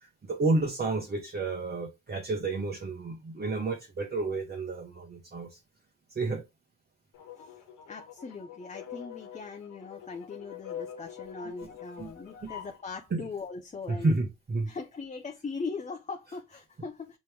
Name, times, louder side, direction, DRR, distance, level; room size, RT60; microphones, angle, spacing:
voice 1, 0.0-5.6 6.1-6.4 12.0-12.1 12.4-12.5 13.1-13.2 13.9-14.7, right 3 dB, 35° right, 1.2 m, -30 dB
sound 1, 7.1-12.8, left 9 dB, 85° left, 1.5 m, -44 dB
voice 2, 7.9-14.2 14.7-17.2, left 4 dB, 25° left, 0.7 m, -40 dB
5.1 x 3.0 x 3.4 m
cardioid pair, 90°, 30 cm